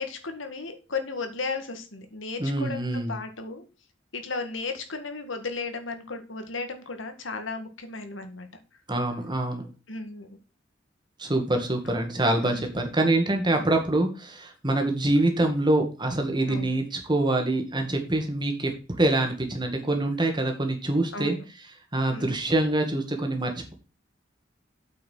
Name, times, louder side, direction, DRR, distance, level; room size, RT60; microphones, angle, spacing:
voice 1, 0.0-3.7 4.1-8.5 9.9-10.3 12.4-12.7 13.6-13.7 16.5-16.8 21.1-21.4 22.1-22.4, left 4 dB, 80° left, 7 dB, 1.9 m, -35 dB
voice 2, 2.4-3.2 8.9-9.7 11.2-18.7 19.0-21.3 21.9-23.7, right 2 dB, 25° right, 4 dB, 2.1 m, -25 dB
8.6 x 5.9 x 5.6 m, 0.32 s
head